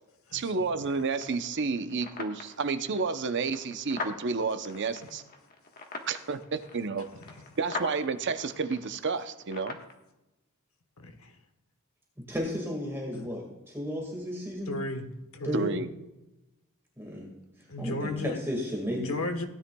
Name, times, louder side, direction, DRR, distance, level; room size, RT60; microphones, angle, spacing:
voice 1, 0.3-5.2 6.1-7.1 7.6-9.8 15.5-15.9, right 4 dB, 55° right, 10 dB, 0.7 m, -30 dB
sound 1, 0.8-9.9, left 3 dB, 40° left, 1.3 m, -43 dB
voice 2, 11.0-11.3 13.1-13.3 14.7-15.1 15.3-15.7 17.7-18.4 19.0-19.5, left 2 dB, 65° left, 6 dB, 1.2 m, -34 dB
voice 3, 12.3-14.7 15.4-15.7 17.0-17.3 17.8-19.1, equal, 10° right, -1 dB, 1.8 m, -33 dB
16.5 x 9.9 x 2.3 m, 0.96 s
head